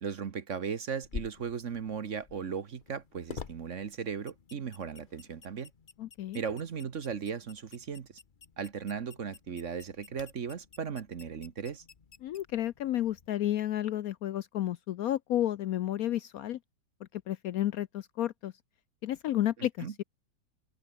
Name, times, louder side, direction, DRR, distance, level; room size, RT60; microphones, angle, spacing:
voice 1, 0.0-5.7 6.3-8.1 8.6-11.8 19.8-19.9, right 6 dB, 50° right, 1.3 m, -37 dB
sound 1, 1.0-13.3, left 6 dB, 35° left, 1.0 m, -50 dB
voice 2, 6.0-6.4 12.2-16.6 17.3-18.5 19.0-20.0, left 12 dB, 65° left, 0.9 m, -31 dB
omnidirectional pair, 1.9 m